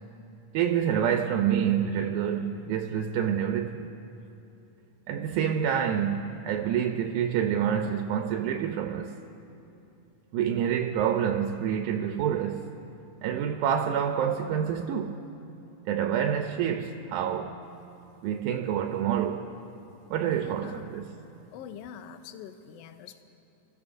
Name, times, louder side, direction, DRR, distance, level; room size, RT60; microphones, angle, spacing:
voice 1, 0.5-3.9 5.1-9.2 10.3-12.7 13.2-15.2 15.9-17.6 18.2-19.6 20.1-21.0, right 8 dB, 85° right, 2.1 m, -27 dB
voice 2, 20.2-20.9 21.5-23.2, left 8 dB, 75° left, 1.4 m, -44 dB
29.5 x 14.5 x 2.6 m
omnidirectional pair, 3.5 m